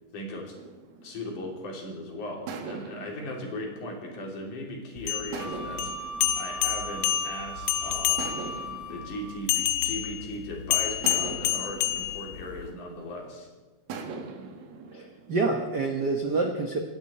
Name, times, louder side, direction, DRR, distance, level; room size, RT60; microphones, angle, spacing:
voice 1, 0.1-0.5 1.0-6.1 6.4-8.3 8.9-13.5, left 1 dB, 70° left, 0 dB, 4.4 m, -38 dB
sound 1, 0.6-1.9 2.5-4.7 5.3-7.5 8.2-10.4 11.0-13.3 13.9-15.5, right 4 dB, 85° right, 3.1 m, -42 dB
sound 2, 5.0-8.7 9.5-12.7, left 13 dB, 90° left, 2.3 m, -28 dB
Wind instrument woodwind instrument, 5.4-9.4, right 2 dB, 40° left, 1.0 m, -38 dB
voice 2, 14.9-16.8, right 3 dB, 60° right, 3 dB, 1.1 m, -27 dB
26.5 x 11.5 x 4.3 m, 1.3 s
omnidirectional pair, 3.7 m